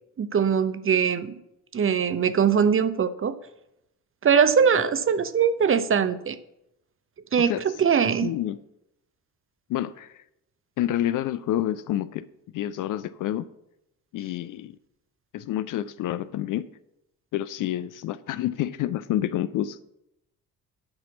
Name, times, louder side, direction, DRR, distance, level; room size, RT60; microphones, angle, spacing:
voice 1, 0.2-1.4 1.7-3.3 4.2-6.4 7.3-7.5 7.8-8.3, right 7 dB, 25° right, 13 dB, 0.7 m, -21 dB
voice 2, 8.2-8.6 9.7-10.2 10.8-12.3 12.5-13.5 14.1-14.8 15.3-16.7 17.3-19.8, left 12 dB, 45° left, 15 dB, 0.5 m, -28 dB
9.7 x 5.9 x 7.1 m, 0.84 s
figure-of-eight pair, 40°, 47 cm